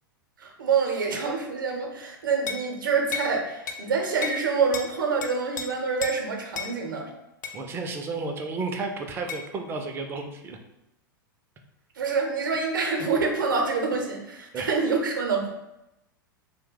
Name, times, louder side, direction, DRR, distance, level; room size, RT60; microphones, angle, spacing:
voice 1, 0.4-7.0 12.0-15.5, right 5 dB, 65° right, 2 dB, 0.6 m, -26 dB
sound 1, 2.5-2.7 3.1-3.3 3.7-3.8 4.2-4.4 4.7-4.9 5.2-5.7 6.0-6.2 6.5-6.7 7.4-7.6 9.3-9.4, left 6 dB, 60° left, 0.4 m, -33 dB
voice 2, 7.5-10.6 14.5-14.7, right 3 dB, 20° right, 4 dB, 0.4 m, -32 dB
2.8 x 2.1 x 3.6 m, 0.90 s
figure-of-eight pair, 95°, 12 cm